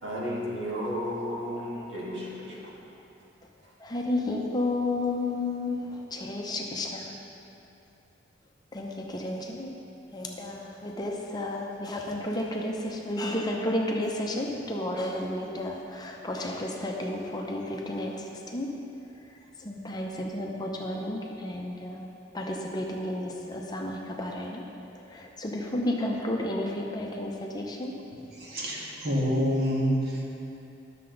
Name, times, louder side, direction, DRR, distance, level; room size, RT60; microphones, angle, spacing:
voice 1, 0.0-2.5, equal, 70° right, -5 dB, 1.9 m, -33 dB
voice 2, 3.8-7.1 8.7-9.7 10.1-18.7 19.6-24.6 25.1-27.9, left 1 dB, 20° left, -1 dB, 0.7 m, -32 dB
voice 3, 28.3-30.2, equal, 55° right, -5 dB, 1.8 m, -27 dB
11.0 x 6.7 x 3.9 m, 2.8 s
head